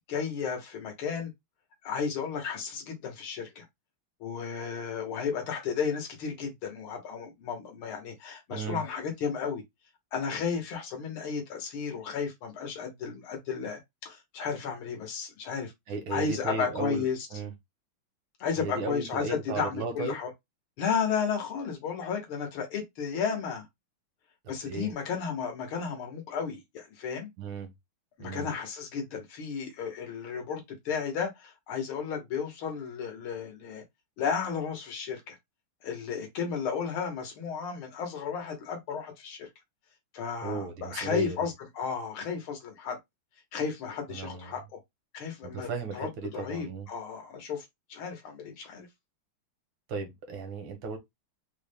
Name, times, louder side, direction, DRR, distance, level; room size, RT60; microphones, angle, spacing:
voice 1, 0.1-1.3 1.8-3.7 4.2-9.6 10.1-15.7 16.1-17.3 18.4-19.2 19.6-20.3 20.8-23.7 24.5-27.3 28.2-33.8 34.2-35.4 35.8-39.5 40.1-43.0 43.5-44.8 45.1-48.9, left 6 dB, 85° left, 2.0 m, -33 dB
voice 2, 8.5-8.8 15.9-17.5 18.6-20.2 24.4-24.9 27.4-27.7 28.2-28.5 40.4-41.4 44.1-44.5 45.4-46.9 49.9-51.0, right 4 dB, 80° right, 1.9 m, -35 dB
4.6 x 2.2 x 3.3 m
omnidirectional pair, 2.3 m